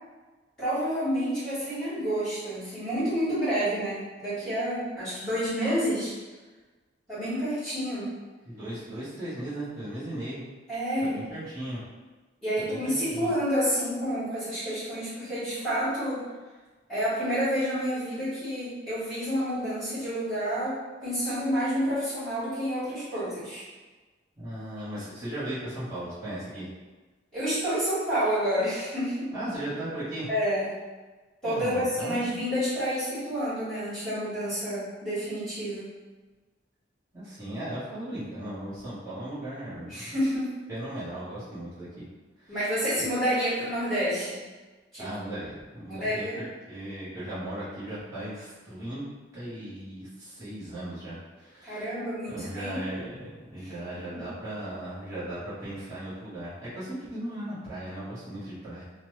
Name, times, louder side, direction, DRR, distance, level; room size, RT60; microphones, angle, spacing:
voice 1, 0.6-6.1 7.1-8.1 10.7-11.2 12.4-16.2 16.9-23.6 27.3-29.3 30.3-30.6 31.4-35.9 39.9-40.6 42.5-44.4 44.9-45.1 45.9-46.4 51.6-52.8 53.9-54.2, equal, 5° left, -16 dB, 1.4 m, -29 dB
voice 2, 8.4-10.4 11.0-11.8 12.6-13.3 24.4-26.7 29.3-30.3 31.4-32.4 37.1-40.1 40.7-42.0 42.4-42.6 45.0-49.0 49.3-52.0 52.3-58.8, right 1 dB, 20° right, -14 dB, 1.1 m, -37 dB
3.0 x 2.0 x 3.1 m, 1.3 s
head